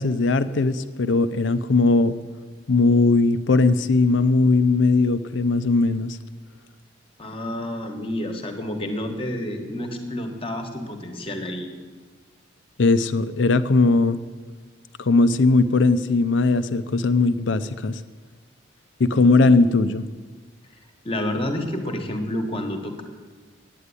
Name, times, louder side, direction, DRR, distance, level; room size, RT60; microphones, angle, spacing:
voice 1, 0.0-2.2 2.7-6.2 12.8-14.2 15.0-18.0 19.0-20.0, left 3 dB, 75° left, 13 dB, 0.6 m, -19 dB
voice 2, 7.2-11.7 19.1-19.5 21.0-23.0, left 1 dB, 30° left, 5 dB, 1.2 m, -29 dB
9.3 x 8.3 x 9.6 m, 1.4 s
head